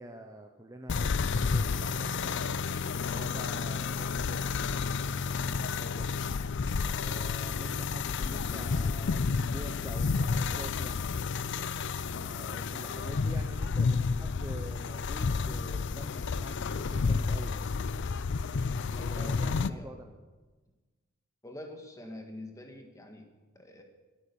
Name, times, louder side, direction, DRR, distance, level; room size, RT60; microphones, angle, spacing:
voice 1, 0.0-2.6 3.0-4.6 5.0-6.1 6.8-11.1 12.1-17.7 19.2-20.1, right 1 dB, 15° right, 4 dB, 0.7 m, -47 dB
sound 1, 0.9-19.7, left 5 dB, 55° left, 0.5 m, -31 dB
voice 2, 12.9-13.3 18.9-20.2 21.4-23.8, left 1 dB, 15° left, 4 dB, 1.7 m, -47 dB
19.5 x 8.9 x 6.9 m, 1.3 s
head